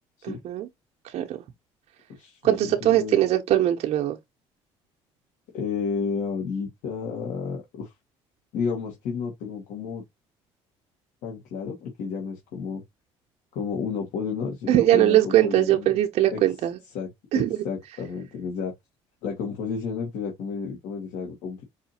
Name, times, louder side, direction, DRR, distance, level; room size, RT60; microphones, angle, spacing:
voice 1, 0.2-0.7 1.1-1.4 2.4-4.2 14.7-16.8 17.3-17.5, right 13 dB, 60° right, 0.7 m, -21 dB
voice 2, 2.1-3.2 5.5-7.9 8.5-10.0 11.2-12.8 13.5-16.0 16.3-16.4 16.9-17.1 17.3-18.7 19.2-21.6, left 5 dB, 75° left, 1.6 m, -31 dB
4.9 x 2.7 x 2.8 m
supercardioid pair, 85°, 12 cm